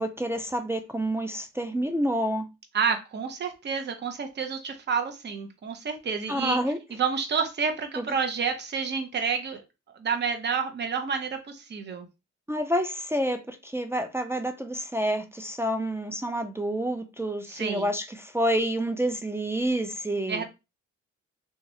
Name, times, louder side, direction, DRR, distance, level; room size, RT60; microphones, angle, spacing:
voice 1, 0.0-2.5 6.3-6.8 8.0-8.1 12.5-20.4, equal, 10° right, 0.3 m, -28 dB
voice 2, 2.7-6.6 6.9-9.6 10.0-12.1 17.5-17.9 20.3-20.4, right 6 dB, 35° right, 0.7 m, -29 dB
3.0 x 2.3 x 2.6 m
cardioid pair, 90°, 30 cm